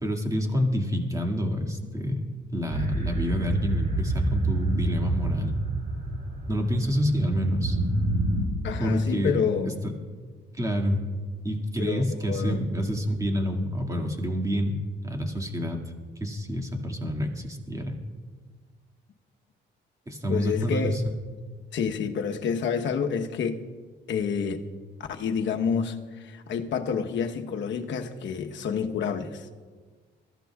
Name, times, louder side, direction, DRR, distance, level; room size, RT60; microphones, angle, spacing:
voice 1, 0.0-5.5 6.5-7.8 8.8-9.3 10.5-11.0 11.4-14.8 15.0-15.8 16.2-18.0 20.1-21.0, equal, 15° right, 2.0 m, -28 dB
sound 1, 2.7-8.5, right 2 dB, 45° right, 3.2 m, -28 dB
voice 2, 8.6-9.8 11.8-12.6 20.3-21.0 21.7-23.6 24.1-24.6 25.0-29.5, left 6 dB, 70° left, 1.0 m, -28 dB
23.0 x 14.5 x 2.4 m
cardioid pair, 90°, 20 cm